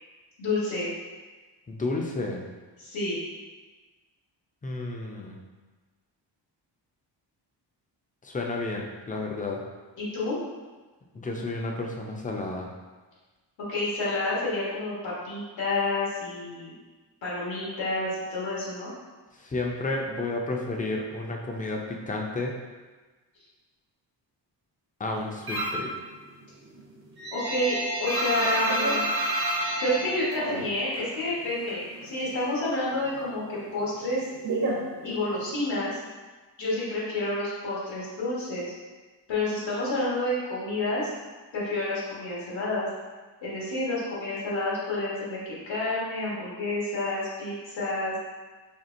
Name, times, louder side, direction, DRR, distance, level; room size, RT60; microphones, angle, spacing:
voice 1, 0.4-0.9 2.8-3.2 10.0-10.4 13.7-16.7 17.2-18.9 27.3-29.0 29.8-34.3 35.0-36.0 36.6-38.7 39.3-41.1 41.5-42.9 43.4-45.4 45.7-48.1, left 2 dB, 90° left, -7 dB, 1.3 m, -29 dB
voice 2, 1.7-2.4 4.6-5.4 8.2-9.6 11.1-12.7 19.4-22.6 25.0-25.9, left 2 dB, 20° left, 0 dB, 0.3 m, -31 dB
sound 1, 25.5-25.9 26.3-31.1 31.4-32.5 32.7-35.6, right 1 dB, 55° right, 0.7 m, -29 dB
4.3 x 2.8 x 2.5 m, 1.3 s
wide cardioid pair, 150°, 44 cm